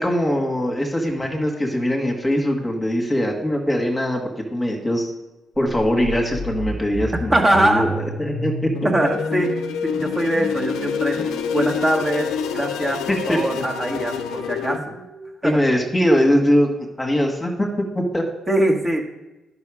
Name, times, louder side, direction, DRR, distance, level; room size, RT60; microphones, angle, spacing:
voice 1, 0.0-5.1 5.6-8.7 13.1-13.6 15.4-16.7 17.0-18.2, equal, 15° left, 1 dB, 1.6 m, -21 dB
sound 1, 5.7-15.6, right 1 dB, 75° right, 3.5 m, -34 dB
voice 2, 7.3-7.9 8.8-9.5 9.9-11.2 11.5-13.0 13.3-14.8 15.4-15.6 18.5-19.0, right 1 dB, 25° right, 0 dB, 1.5 m, -21 dB
sound 2, 8.7-14.8, left 7 dB, 80° left, 0.6 m, -27 dB
10.5 x 5.6 x 4.9 m, 1.0 s
cardioid pair, 90°, 0 cm